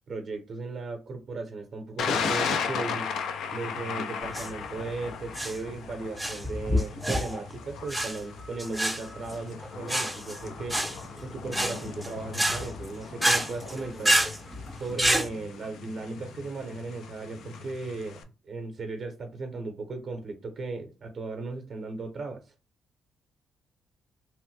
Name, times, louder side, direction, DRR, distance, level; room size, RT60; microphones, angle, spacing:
voice 1, 0.1-3.1 3.5-10.9 11.2-14.2 14.8-22.4, right 3 dB, 50° right, 0.6 m, -36 dB
Thunder, 2.0-18.2, left 6 dB, 75° left, 0.4 m, -37 dB
sound 1, 4.2-15.3, equal, ahead, 0.5 m, -29 dB
3.0 x 2.0 x 3.2 m
cardioid pair, 90°, 0 cm